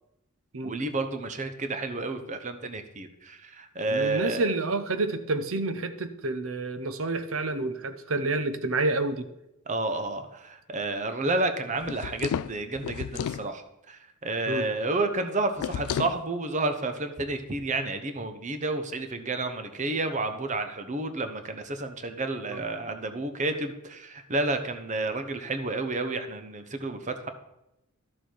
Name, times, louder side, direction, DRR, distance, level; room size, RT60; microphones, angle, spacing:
voice 1, 0.6-4.5 9.7-27.3, right 2 dB, 35° right, 8 dB, 0.9 m, -30 dB
voice 2, 3.9-9.3 14.5-14.7 22.5-22.6, right 2 dB, 65° right, 11 dB, 0.8 m, -29 dB
sound 1, 11.8-13.5 15.6-16.2, left 8 dB, 80° left, 0.3 m, -32 dB
12.0 x 7.0 x 4.5 m, 0.88 s
head